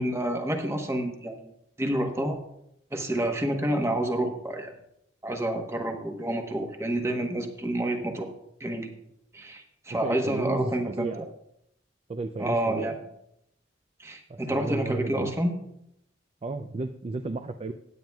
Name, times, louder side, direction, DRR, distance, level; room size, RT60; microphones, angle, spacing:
voice 1, 0.0-1.5 1.8-2.4 2.9-4.7 5.2-8.3 8.6-8.9 9.3-11.2 12.4-13.0 14.0-15.6, right 1 dB, 15° right, 4 dB, 1.1 m, -29 dB
voice 2, 9.9-11.3 12.1-13.0 14.3-15.3 16.4-17.7, right 2 dB, 30° right, 8 dB, 0.4 m, -33 dB
16.5 x 9.1 x 2.3 m, 0.77 s
head